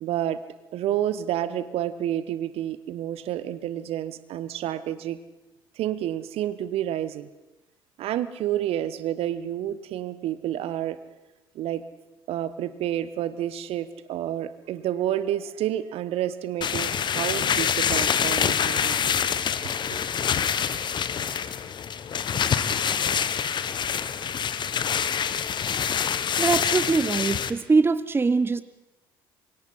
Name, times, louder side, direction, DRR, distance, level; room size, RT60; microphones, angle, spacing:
voice 1, 0.0-0.4 0.7-5.2 5.8-7.3 8.0-11.0 11.5-11.8 12.3-19.1 19.9-20.0, right 11 dB, 55° right, 15 dB, 1.1 m, -29 dB
sound 1, 16.6-27.5, left 8 dB, 40° left, 1.1 m, -26 dB
voice 2, 26.4-28.6, right 4 dB, 20° right, 16 dB, 0.8 m, -22 dB
27.0 x 24.0 x 4.2 m, 1.0 s
figure-of-eight pair, 55°, 12 cm